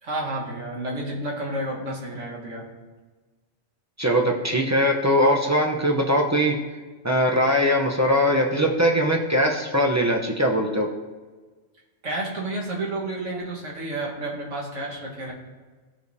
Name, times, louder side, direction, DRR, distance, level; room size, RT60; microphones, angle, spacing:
voice 1, 0.0-2.7 12.0-15.3, right 1 dB, 75° right, -3 dB, 1.9 m, -30 dB
voice 2, 4.0-6.5 7.0-10.9, equal, 20° right, 0 dB, 0.6 m, -21 dB
14.0 x 5.0 x 2.7 m, 1.3 s
omnidirectional pair, 1.3 m